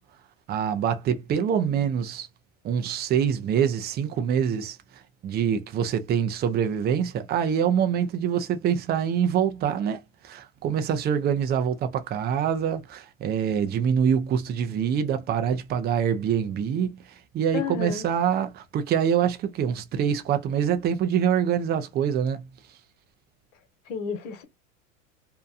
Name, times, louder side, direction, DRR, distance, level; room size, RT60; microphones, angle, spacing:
voice 1, 0.5-2.3 2.6-22.5, right 8 dB, 25° right, 0.5 m, -25 dB
voice 2, 17.5-18.1 23.9-24.4, left 6 dB, 65° left, 1.2 m, -31 dB
2.7 x 2.2 x 2.4 m
hypercardioid pair, 100°, 41 cm